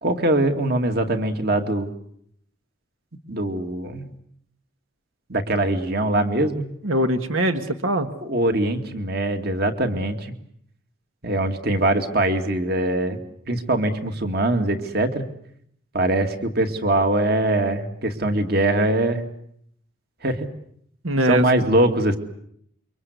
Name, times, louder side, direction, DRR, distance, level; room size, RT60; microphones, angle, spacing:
voice 1, 0.0-1.9 3.3-4.1 5.3-6.7 8.2-10.3 11.2-13.2 13.5-15.3 15.9-19.2 20.2-20.5 21.2-22.2, right 1 dB, 50° right, 6 dB, 2.4 m, -22 dB
voice 2, 6.8-8.1 21.0-21.4, right 1 dB, 80° right, 7 dB, 1.7 m, -21 dB
28.0 x 24.5 x 8.2 m, 0.70 s
head